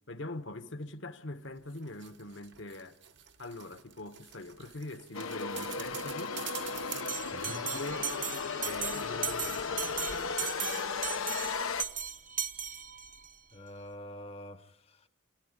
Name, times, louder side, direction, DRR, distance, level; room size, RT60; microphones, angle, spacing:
voice 1, 0.1-3.0 3.4-6.4 7.4-8.1 8.6-10.6, left 2 dB, 60° left, 1.3 m, -43 dB
sound 1, 1.5-8.5 8.7-8.8, right 10 dB, 55° right, 1.1 m, -47 dB
sound 2, 5.1-11.8, left 5 dB, 85° left, 1.0 m, -35 dB
Bell, 7.1-13.3, right 8 dB, 40° right, 0.9 m, -37 dB
voice 2, 7.3-7.7 13.5-15.1, left 1 dB, 30° left, 0.9 m, -46 dB
28.0 x 10.0 x 9.8 m
head